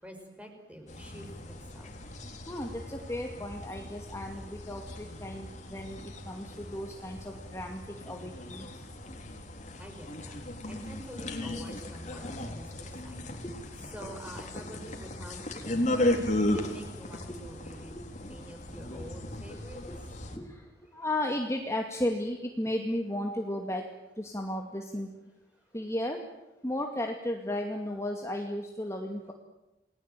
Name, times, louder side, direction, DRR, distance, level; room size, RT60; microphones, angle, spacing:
voice 1, 0.0-1.9 9.8-12.7 13.0-13.3 13.9-16.1 16.5-18.0 18.3-19.8 20.9-21.0, equal, 5° right, 4 dB, 5.8 m, -47 dB
sound 1, 0.9-20.4, left 1 dB, 40° left, 3.7 m, -36 dB
voice 2, 2.5-8.7 13.4-13.5 13.8-14.2 14.6-14.7 16.5-16.7 17.9-18.0 19.8-19.9 20.3-20.6 20.9-23.8 24.2-25.1 25.7-26.2 26.6-29.3, left 1 dB, 15° left, 2 dB, 2.3 m, -34 dB
29.5 x 20.0 x 9.2 m, 0.95 s
head